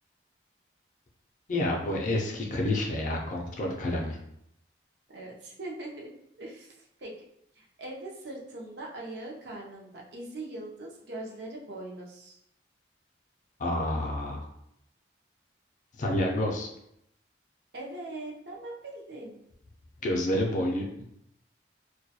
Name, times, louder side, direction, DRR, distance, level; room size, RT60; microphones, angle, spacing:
voice 1, 1.5-4.2 13.6-14.5 16.0-16.7 20.0-21.0, left 1 dB, 45° left, 0 dB, 0.4 m, -29 dB
voice 2, 5.1-6.1 6.4-7.1 7.5-12.4 17.7-19.4, right 2 dB, 65° right, -2 dB, 0.6 m, -41 dB
2.2 x 2.2 x 2.7 m, 0.77 s
head